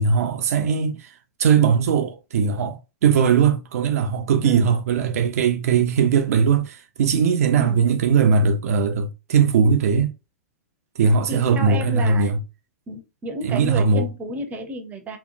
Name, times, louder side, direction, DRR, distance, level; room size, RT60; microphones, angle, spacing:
voice 1, 0.0-10.1 11.0-12.4 13.4-14.1, right 6 dB, 70° right, 0.4 m, -20 dB
voice 2, 11.3-12.4 12.9-15.2, right 1 dB, 20° right, 0.6 m, -31 dB
2.9 x 2.1 x 2.5 m
hypercardioid pair, 125°, 8 cm